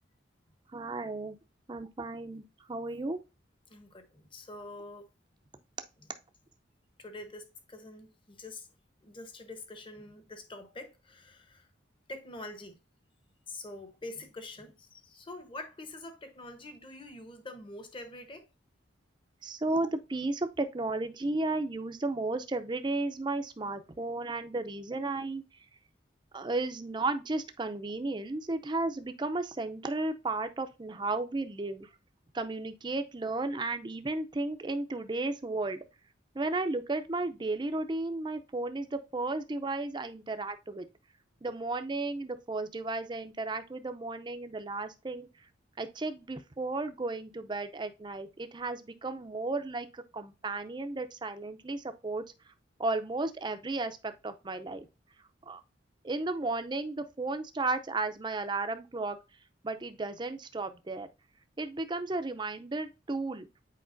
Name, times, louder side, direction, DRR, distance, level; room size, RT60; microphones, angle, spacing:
voice 1, 0.7-1.4 1.7-2.4 2.7-3.2 19.4-25.4 26.3-31.9 32.3-35.8 36.3-40.8 41.4-45.3 45.8-52.5 52.8-54.9 55.5-55.6 56.0-59.2 59.6-61.1 61.6-63.5, right 2 dB, 25° right, 0.5 m, -34 dB
voice 2, 3.7-5.1 7.0-8.7 9.0-11.7 12.1-12.8 13.5-18.5, left 2 dB, 25° left, 0.9 m, -45 dB
8.6 x 4.6 x 2.6 m
head